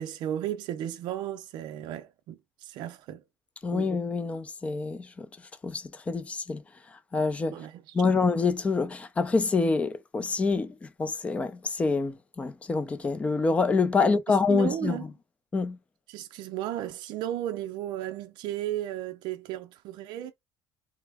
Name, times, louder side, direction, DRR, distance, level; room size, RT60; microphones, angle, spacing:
voice 1, 0.0-3.2 3.7-3.9 7.5-7.9 14.0-15.0 16.1-20.3, right 12 dB, 65° right, 0.4 m, -35 dB
voice 2, 3.6-5.3 5.6-6.6 6.9-7.6 7.9-15.0 15.5-15.8, left 4 dB, 15° left, 0.4 m, -26 dB
3.3 x 2.0 x 3.3 m
cardioid pair, 160°, 8 cm